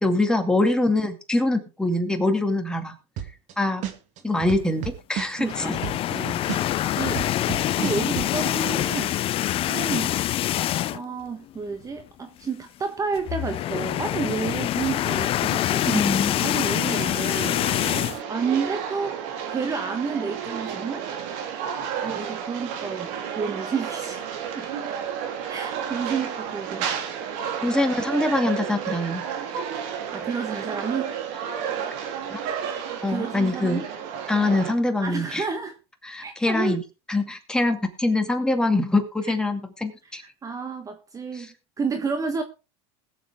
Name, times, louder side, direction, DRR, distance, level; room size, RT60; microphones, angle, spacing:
voice 1, 0.0-2.9 3.6-3.8 4.2-5.8 15.9-16.4 27.6-29.3 32.3-32.4 33.0-33.8 34.3-35.4 36.0-36.8 37.1-40.2 41.3-41.5, left 2 dB, 5° left, 2.3 m, -24 dB
sound 1, 3.2-3.5 3.8-6.2 6.5-8.3, right 10 dB, 50° right, 2.2 m, -31 dB
sound 2, 5.4-11.2 11.6-11.7 12.0-12.1 13.2-18.2, left 13 dB, 35° left, 0.5 m, -25 dB
voice 2, 5.4-5.8 6.1-6.5 6.9-7.2 7.7-10.2 10.9-17.7 18.3-21.1 22.0-24.8 25.5-26.9 30.1-31.1 33.1-33.9 35.0-35.7 36.2-36.8 39.3-39.4 40.0-41.5 41.8-42.4, right 5 dB, 20° right, 1.2 m, -30 dB
sound 3, 16.9-34.7, right 8 dB, 65° right, 3.3 m, -32 dB
21.0 x 7.4 x 3.6 m
supercardioid pair, 120°, 15 cm